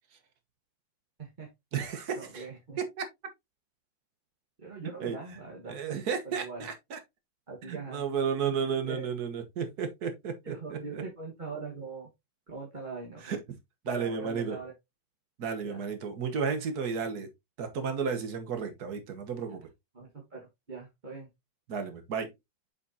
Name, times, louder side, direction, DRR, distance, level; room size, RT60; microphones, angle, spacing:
voice 1, 1.2-1.5 1.9-2.8 4.6-5.7 6.2-6.7 7.5-8.1 8.4-9.1 10.4-12.1 12.5-13.4 13.8-14.7 15.6-15.8 19.9-21.3, right 4 dB, 30° right, 1.5 m, -42 dB
voice 2, 1.7-2.4 2.8-3.0 5.0-5.2 5.7-7.0 7.6-11.0 13.2-13.4 13.8-14.6 15.4-17.3 17.6-19.7 21.7-22.3, right 6 dB, 60° right, 1.6 m, -33 dB
7.3 x 5.5 x 2.7 m
omnidirectional pair, 2.0 m